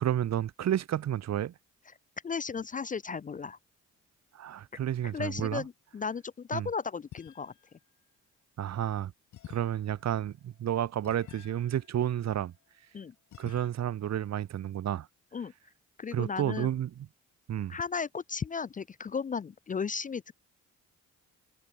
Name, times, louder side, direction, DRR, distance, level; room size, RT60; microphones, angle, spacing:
voice 1, 0.0-1.5 4.3-5.6 6.5-6.7 8.6-9.1 9.5-12.5 13.4-15.1 16.1-17.1 17.5-17.8, right 11 dB, 60° right, 1.5 m, -31 dB
voice 2, 2.2-3.6 5.0-7.5 12.9-13.1 15.3-15.5 16.0-16.7 17.7-20.3, left 5 dB, 25° left, 0.5 m, -35 dB
sound 1, 7.1-7.8 9.3-12.7 13.3-13.7, left 12 dB, 75° left, 3.2 m, -51 dB
cardioid pair, 90°, 30 cm